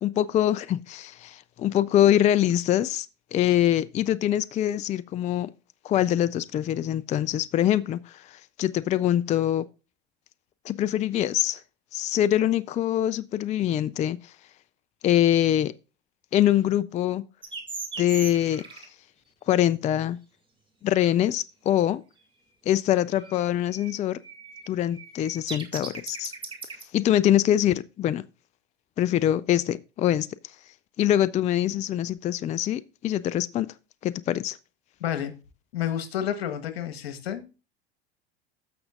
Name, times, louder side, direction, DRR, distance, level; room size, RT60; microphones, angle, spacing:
voice 1, 0.0-5.5 5.8-9.6 10.6-11.6 11.9-14.3 15.0-15.7 16.3-17.2 18.0-18.9 19.5-20.2 20.8-22.0 22.7-24.2 24.7-26.3 26.9-28.2 29.0-30.3 31.0-33.7 34.0-34.6, left 12 dB, 25° left, 0.4 m, -24 dB
sound 1, 16.5-16.6 18.5-18.8 20.9-21.1 23.1-23.4, right 3 dB, 80° right, 4.4 m, -55 dB
sound 2, 17.4-18.9 23.1-23.4 23.7-26.8, right 4 dB, 15° right, 2.2 m, -38 dB
voice 2, 35.0-35.3 35.7-37.5, left 10 dB, 80° left, 1.4 m, -30 dB
14.5 x 6.3 x 2.5 m
hypercardioid pair, 90°, 31 cm